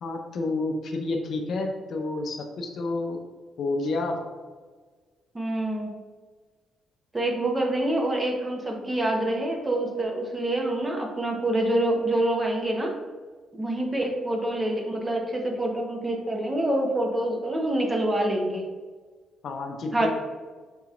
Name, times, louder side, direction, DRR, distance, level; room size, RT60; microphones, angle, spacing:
voice 1, 0.0-3.2 3.6-4.2 19.4-20.1, left 2 dB, 60° left, 4 dB, 0.5 m, -29 dB
voice 2, 5.3-5.9 7.1-12.9 13.5-18.6 19.9-20.1, right 1 dB, 20° right, 1 dB, 0.8 m, -26 dB
5.4 x 2.9 x 2.4 m, 1.4 s
cardioid pair, 90°, 0 cm